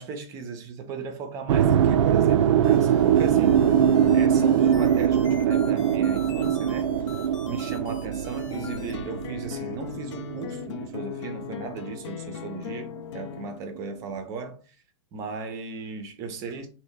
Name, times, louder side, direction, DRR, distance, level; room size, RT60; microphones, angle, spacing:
voice 1, 0.0-3.7 4.1-14.6 15.1-16.7, right 4 dB, 20° right, 0.5 m, -36 dB
sound 1, 1.5-11.6, right 9 dB, 80° right, 0.4 m, -22 dB
sound 2, 2.6-8.9, left 5 dB, 85° left, 1.0 m, -43 dB
sound 3, 8.5-13.6, left 11 dB, 65° left, 0.4 m, -38 dB
3.2 x 2.1 x 3.8 m
supercardioid pair, 165°, 16 cm